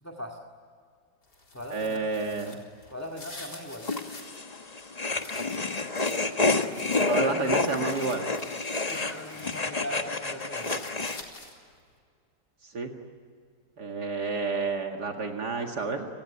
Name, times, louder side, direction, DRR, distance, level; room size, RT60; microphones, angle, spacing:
voice 1, 0.0-0.4 1.5-2.0 2.9-3.9 8.9-10.8, left 1 dB, 10° left, 1 dB, 2.0 m, -39 dB
sound 1, 1.2-4.4 4.8-9.7 10.0-11.7, left 2 dB, 75° left, 4.6 m, -48 dB
voice 2, 1.7-2.6 7.1-8.3 12.6-12.9 13.8-16.1, right 4 dB, 70° right, 2 dB, 2.6 m, -30 dB
sound 2, 3.8-11.2, left 3 dB, 25° left, 1.2 m, -29 dB
29.5 x 19.5 x 9.9 m, 2.2 s
omnidirectional pair, 1.8 m